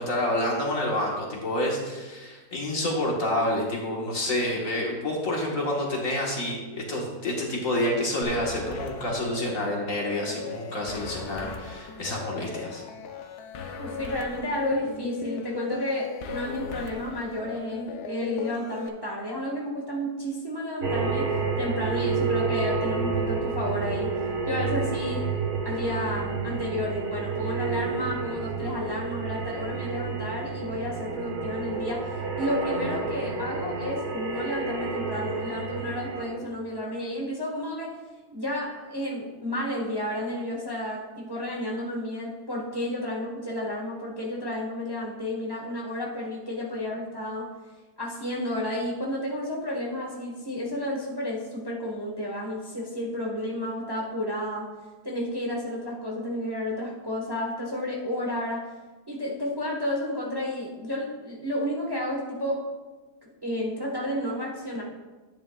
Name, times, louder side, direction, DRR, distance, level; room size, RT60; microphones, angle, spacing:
voice 1, 0.0-12.8, left 1 dB, 50° left, -2 dB, 1.8 m, -28 dB
sound 1, 8.2-18.9, left 6 dB, 70° left, 1.2 m, -38 dB
voice 2, 13.8-21.3 21.6-24.1 24.5-25.2 25.6-37.9 38.3-47.5 48.0-54.7 55.0-58.7 59.1-62.6 63.2-64.8, left 1 dB, 15° right, -2 dB, 1.2 m, -31 dB
sound 2, 20.8-36.3, right 4 dB, 70° right, 1.6 m, -30 dB
10.5 x 9.8 x 2.3 m, 1.2 s
omnidirectional pair, 1.8 m